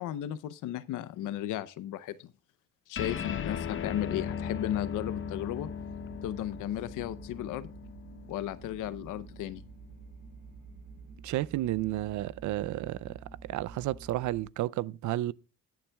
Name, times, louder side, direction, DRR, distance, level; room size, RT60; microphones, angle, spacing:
voice 1, 0.0-2.3 2.9-5.7 6.2-7.7 8.3-9.7, left 12 dB, 90° left, 0.7 m, -35 dB
sound 1, 2.9-9.7, left 7 dB, 45° left, 0.7 m, -38 dB
sound 2, 4.0-14.5, right 5 dB, 40° right, 6.7 m, -49 dB
voice 2, 11.2-13.2 13.5-15.3, right 15 dB, 75° right, 0.5 m, -32 dB
20.0 x 7.2 x 2.3 m
cardioid pair, 90°, 30 cm